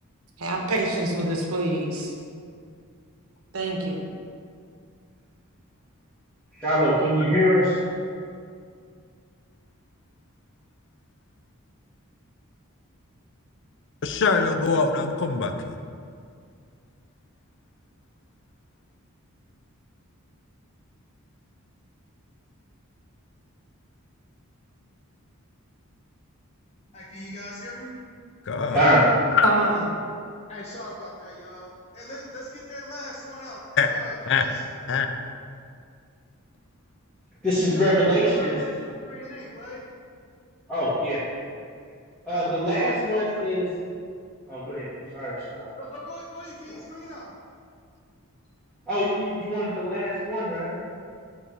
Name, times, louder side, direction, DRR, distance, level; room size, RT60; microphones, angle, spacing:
voice 1, 0.4-2.1 3.5-4.0 29.4-29.8, right 2 dB, 75° right, 0 dB, 1.0 m, -26 dB
voice 2, 6.6-7.8 28.7-29.1 37.4-38.6 40.7-41.2 42.3-43.7 44.5-45.8 46.7-46.8 48.9-50.8, equal, 5° left, -12 dB, 1.4 m, -23 dB
voice 3, 14.0-15.8 28.5-28.8 29.3-29.5 33.8-33.9 34.3-34.4 34.9-35.1, left 5 dB, 55° left, 7 dB, 0.5 m, -23 dB
voice 4, 26.9-27.9 30.5-34.6 37.6-39.8 42.3-43.1 45.8-47.3, equal, 30° left, -6 dB, 0.9 m, -39 dB
8.2 x 3.1 x 5.3 m, 2.2 s
head